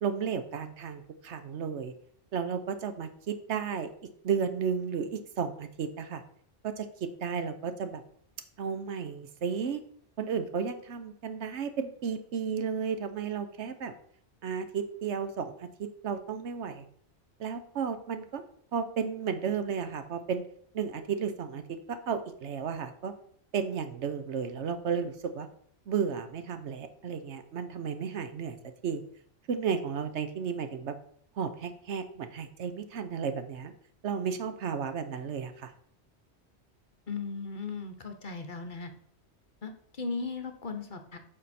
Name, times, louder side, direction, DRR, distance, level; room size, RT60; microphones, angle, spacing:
voice 1, 0.0-1.9 2.3-3.9 4.2-6.2 6.6-8.0 8.6-9.8 10.2-13.9 14.4-16.8 17.4-18.4 18.7-20.4 20.7-21.6 21.9-23.1 23.5-25.5 25.9-28.6 28.8-29.0 29.5-30.9 31.4-33.7 34.0-35.7, right 6 dB, 70° right, 9 dB, 1.1 m, -33 dB
voice 2, 37.1-38.9 39.6-41.2, left 4 dB, 45° left, 6 dB, 0.9 m, -37 dB
9.2 x 5.5 x 4.2 m, 0.63 s
omnidirectional pair, 1.2 m